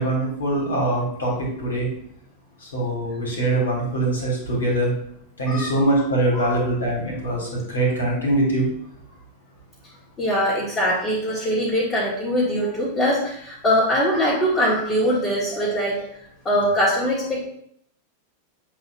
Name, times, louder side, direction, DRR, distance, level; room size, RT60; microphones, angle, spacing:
voice 1, 0.0-1.9 2.6-4.9 5.4-8.7, right 1 dB, 70° left, -2 dB, 2.4 m, -23 dB
voice 2, 10.2-16.0 16.4-17.5, equal, 20° left, -8 dB, 2.0 m, -22 dB
7.7 x 3.0 x 4.5 m, 0.70 s
figure-of-eight pair, 90°, 0 cm